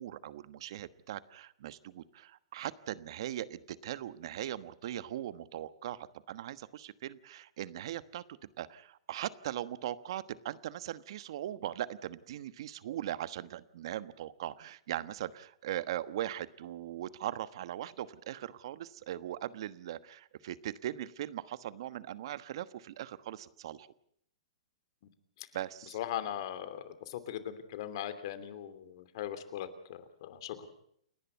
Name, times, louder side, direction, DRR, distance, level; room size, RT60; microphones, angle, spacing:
voice 1, 0.0-8.2 8.6-23.9 25.5-26.0, right 12 dB, 60° right, 15 dB, 1.2 m, -40 dB
voice 2, 25.9-30.7, left 10 dB, 55° left, 12 dB, 2.9 m, -39 dB
29.5 x 11.0 x 9.4 m, 0.70 s
hypercardioid pair, 130°, 3 cm